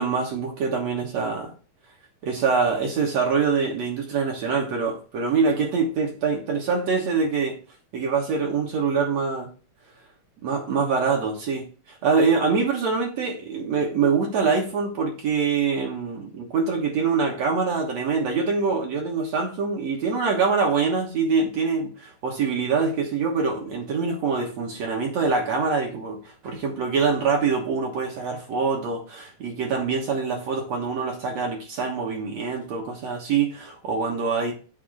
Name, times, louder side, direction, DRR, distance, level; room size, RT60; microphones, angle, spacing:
voice 1, 0.0-1.5 2.2-7.6 7.9-9.5 10.4-34.5, right 5 dB, 60° right, 2.3 m, -24 dB
8.6 x 2.9 x 6.3 m
omnidirectional pair, 3.6 m